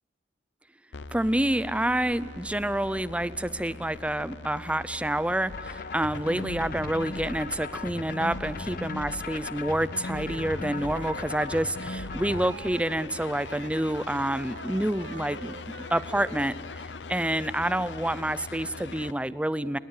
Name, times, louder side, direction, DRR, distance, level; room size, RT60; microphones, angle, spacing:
sound 1, 0.9-19.1, left 4 dB, 75° left, 0.8 m, -42 dB
voice 1, 1.1-15.5 15.9-16.5 17.1-19.8, right 1 dB, 5° right, 16 dB, 0.6 m, -28 dB
sound 2, 5.5-12.5, left 2 dB, 50° left, 1.1 m, -37 dB
Wind instrument woodwind instrument, 10.1-13.0 13.3-16.5, right 4 dB, 85° right, 1.7 m, -45 dB
29.5 x 19.5 x 9.7 m, 2.3 s
head